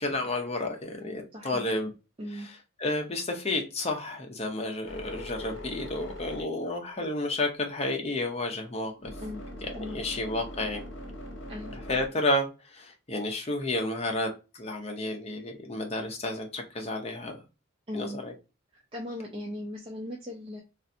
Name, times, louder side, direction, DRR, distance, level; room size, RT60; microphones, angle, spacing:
voice 1, 0.0-1.9 2.8-9.1 9.7-10.8 11.9-17.4 17.9-18.3, left 2 dB, 30° left, 0.6 m, -31 dB
voice 2, 1.3-1.7 2.2-2.5 9.2-9.4 9.7-10.1 11.5-11.7 17.9-18.2 18.9-20.6, left 1 dB, 25° right, 0.5 m, -38 dB
sound 1, 4.8-7.5 7.9-12.1, left 1 dB, 60° left, 0.9 m, -42 dB
3.2 x 2.5 x 2.6 m
head